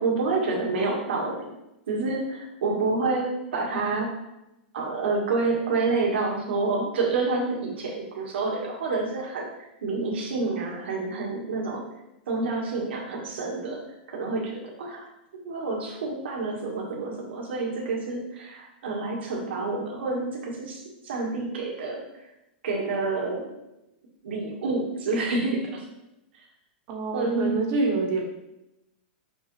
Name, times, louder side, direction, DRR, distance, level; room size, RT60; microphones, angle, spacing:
voice 1, 0.0-1.5 1.9-4.2 4.7-9.5 9.8-11.9 12.3-15.1 15.3-22.0 22.6-23.5 24.2-25.8 27.1-27.6, right 3 dB, 85° right, -1 dB, 2.0 m, -28 dB
voice 2, 26.9-28.2, right 3 dB, 35° right, 1 dB, 1.2 m, -26 dB
6.3 x 5.8 x 3.4 m, 0.89 s
supercardioid pair, 165°, 6 cm